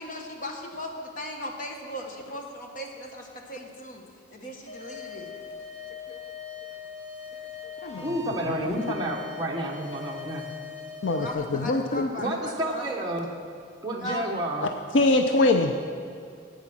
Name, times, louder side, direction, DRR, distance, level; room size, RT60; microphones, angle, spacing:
voice 1, 0.0-4.0 4.3-5.3 11.1-12.9 14.0-14.3, left 1 dB, 45° left, 1 dB, 1.4 m, -37 dB
sound 1, 4.7-11.3, left 5 dB, 75° left, 1.9 m, -41 dB
voice 2, 8.0-10.5 12.2-13.3 13.8-14.7, right 1 dB, 20° right, -2 dB, 1.0 m, -30 dB
voice 3, 11.0-12.1 14.6-15.7, left 2 dB, 90° left, 5 dB, 0.6 m, -23 dB
12.0 x 8.8 x 6.0 m, 2.3 s
head